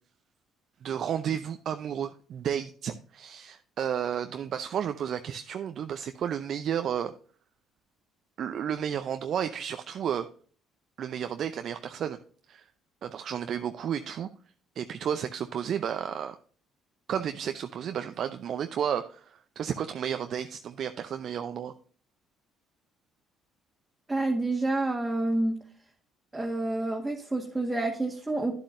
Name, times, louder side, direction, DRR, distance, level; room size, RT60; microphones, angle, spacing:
voice 1, 0.8-7.1 8.4-10.3 11.0-12.2 12.5-12.7 13.0-14.3 14.8-16.4 17.1-21.7, right 8 dB, 60° right, 8 dB, 0.5 m, -32 dB
voice 2, 24.1-25.5 26.3-28.5, right 2 dB, 20° right, 0 dB, 1.6 m, -28 dB
11.0 x 7.5 x 2.6 m, 0.43 s
hypercardioid pair, 55°, 0 cm